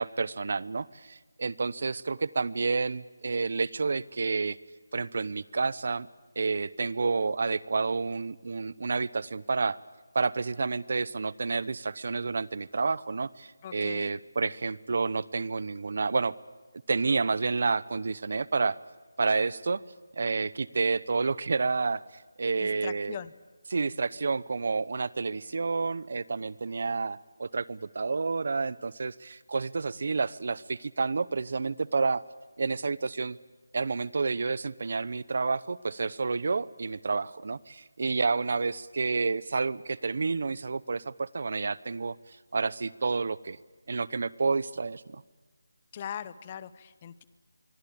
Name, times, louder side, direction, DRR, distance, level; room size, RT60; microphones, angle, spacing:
voice 1, 0.0-4.6 4.9-6.1 6.4-9.8 10.1-16.3 16.9-18.8 19.2-19.8 20.1-23.2 23.7-32.2 32.6-33.4 33.7-42.2 42.5-43.6 43.9-45.2, right 4 dB, 40° right, 20 dB, 0.9 m, -29 dB
voice 2, 13.6-14.1 22.6-23.3 45.9-47.2, left 9 dB, 15° left, 17 dB, 0.8 m, -40 dB
26.5 x 24.0 x 8.7 m, 1.3 s
figure-of-eight pair, 175°, 0 cm